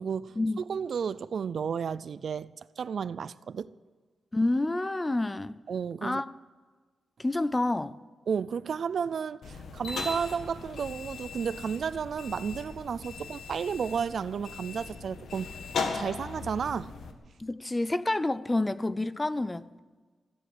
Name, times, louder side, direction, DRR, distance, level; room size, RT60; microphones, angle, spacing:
voice 1, 0.0-3.7 5.7-6.2 8.3-15.5 15.9-16.9, right 6 dB, 55° right, 0.4 m, -32 dB
voice 2, 4.3-5.6 6.0-6.3 7.2-8.0 17.4-19.7, left 2 dB, 15° left, 0.5 m, -28 dB
sound 1, 9.4-17.1, left 4 dB, 75° left, 1.7 m, -38 dB
15.5 x 10.0 x 7.9 m
wide cardioid pair, 170°, 0 cm